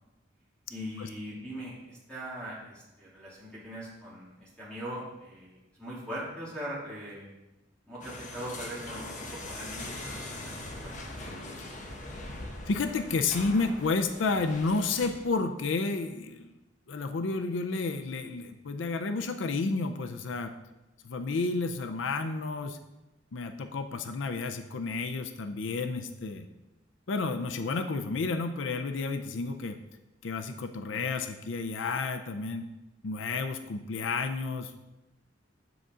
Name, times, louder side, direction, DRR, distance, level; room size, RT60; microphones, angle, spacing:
voice 1, 0.7-7.3 7.8-10.5 10.8-10.9, equal, 5° left, -8 dB, 3.0 m, -41 dB
sound 1, 8.0-15.3, left 2 dB, 40° left, 1.0 m, -41 dB
voice 2, 12.7-16.5 16.9-20.5 21.0-22.8 23.3-26.5 27.1-29.8 30.2-32.7 33.0-34.7, left 3 dB, 85° left, 8 dB, 0.5 m, -31 dB
7.7 x 6.7 x 3.7 m, 1.0 s
head